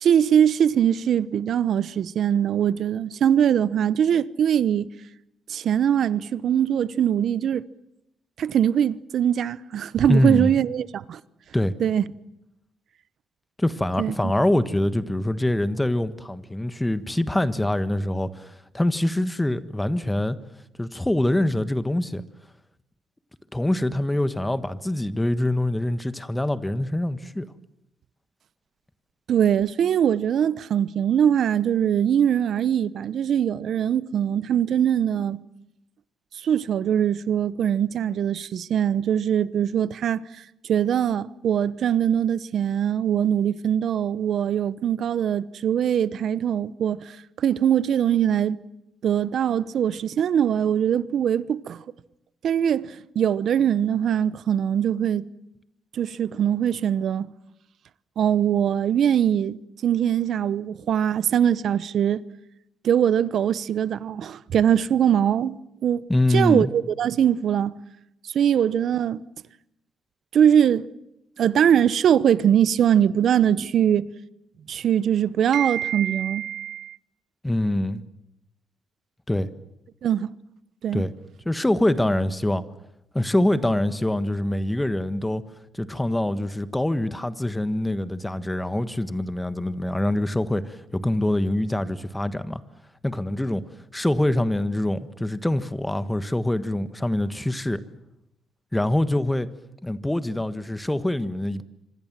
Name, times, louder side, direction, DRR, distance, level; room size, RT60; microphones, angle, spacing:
voice 1, 0.0-4.9 5.5-7.6 8.4-11.2 11.8-12.0 14.0-14.3 29.3-35.4 36.4-40.2 40.7-48.6 49.0-51.8 52.4-55.2 55.9-57.3 58.2-59.6 59.8-62.2 62.8-65.6 65.8-66.0 66.3-67.7 68.3-69.2 70.3-70.9 71.4-74.1 74.7-77.0 80.0-80.3 80.8-81.0, right 9 dB, 65° right, 0.9 m, -22 dB
voice 2, 10.1-10.5 11.5-11.7 13.6-20.4 20.8-22.2 23.5-27.5 66.1-66.7 77.4-78.0 79.3-79.5 80.9-81.1 81.4-82.6 83.1-85.4 85.7-92.6 93.0-93.6 93.9-97.8 98.7-99.5 99.8-101.6, left 1 dB, 10° left, 1.4 m, -24 dB
26.0 x 25.5 x 7.5 m
cardioid pair, 90°, 0 cm